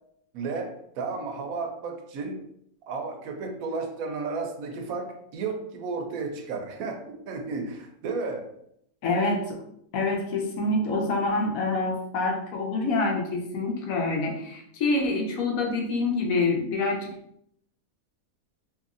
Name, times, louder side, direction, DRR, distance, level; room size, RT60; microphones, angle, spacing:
voice 1, 0.3-2.4 2.9-8.5, right 4 dB, 80° right, 4 dB, 1.0 m, -33 dB
voice 2, 9.0-9.6 9.9-17.1, left 3 dB, 75° left, 0 dB, 1.1 m, -26 dB
2.9 x 2.6 x 2.5 m, 0.72 s
omnidirectional pair, 1.5 m